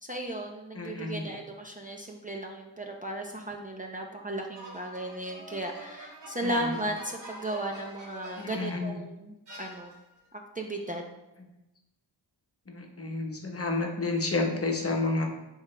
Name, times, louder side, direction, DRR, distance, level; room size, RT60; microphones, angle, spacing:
voice 1, 0.0-9.9 10.5-11.0, right 1 dB, 20° right, 1 dB, 0.6 m, -35 dB
voice 2, 0.7-1.3 6.4-6.8 8.4-9.0 12.7-15.3, left 3 dB, 30° left, 1 dB, 1.2 m, -30 dB
sound 1, 4.5-8.9 9.5-10.2, right 1 dB, 70° right, 2.1 m, -45 dB
11.5 x 4.8 x 3.3 m, 0.96 s
wide cardioid pair, 140°, 44 cm